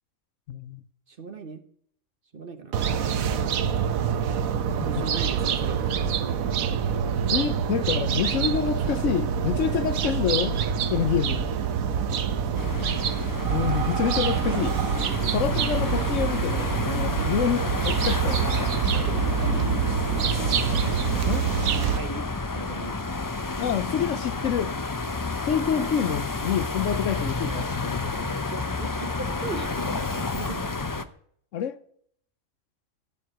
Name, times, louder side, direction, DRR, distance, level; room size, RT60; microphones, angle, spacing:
voice 1, 0.5-0.8 4.9-5.0 7.3-10.6 10.9-11.5 13.5-14.8 15.3-18.7 21.3-21.5 23.6-24.7 25.4-28.0 31.5-31.8, left 8 dB, 70° left, 1.0 m, -27 dB
voice 2, 1.1-1.6 2.3-2.8 3.1-3.7 4.7-6.5 12.4-12.9 17.1-17.3 18.8-20.3 21.9-23.0 25.7-26.1 28.0-30.8, right 3 dB, 45° right, 1.3 m, -39 dB
sound 1, 2.7-22.0, right 7 dB, 80° right, 1.3 m, -26 dB
sound 2, 12.5-31.0, left 3 dB, 30° left, 0.4 m, -31 dB
14.0 x 4.8 x 8.9 m
omnidirectional pair, 1.4 m